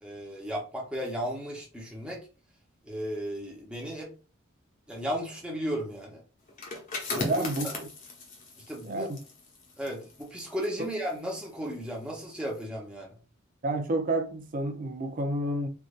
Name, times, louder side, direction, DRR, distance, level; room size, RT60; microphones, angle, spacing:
voice 1, 0.0-2.2 2.8-4.1 4.9-6.2 7.1-7.8 8.7-9.1 9.8-13.1, equal, 5° right, 0.8 m, -35 dB
sound 1, 6.5-12.0 12.3-12.6, left 3 dB, 40° left, 0.9 m, -38 dB
voice 2, 7.1-7.9 8.8-9.2 10.8-10.9 13.6-15.7, right 1 dB, 40° right, 0.5 m, -30 dB
3.3 x 2.5 x 2.4 m
head